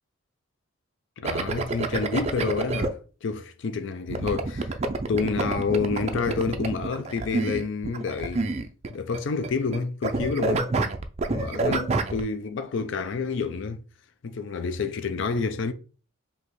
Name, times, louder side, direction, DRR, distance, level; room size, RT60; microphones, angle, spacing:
voice 1, 1.2-4.8 5.1-8.5 8.9-10.7 11.3-13.8 14.2-15.7, left 4 dB, 60° left, 0.4 m, -29 dB
sound 1, 1.2-2.9 4.1-9.2 9.4-9.8 10.0-12.2, right 3 dB, 30° right, 0.4 m, -28 dB
5.2 x 2.8 x 3.1 m
head